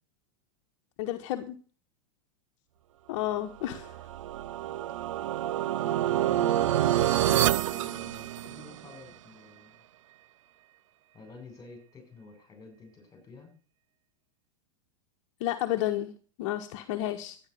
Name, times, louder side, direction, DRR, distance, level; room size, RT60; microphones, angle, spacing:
voice 1, 1.0-1.6 3.1-4.0 15.4-16.1 16.4-17.4, left 13 dB, 60° left, 1.4 m, -31 dB
sound 1, 3.7-8.9, right 12 dB, 75° right, 0.5 m, -27 dB
voice 2, 5.6-6.6 7.1-9.8 11.1-13.5, left 3 dB, 20° left, 7.6 m, -50 dB
12.0 x 9.8 x 6.8 m
hypercardioid pair, 110°, 16 cm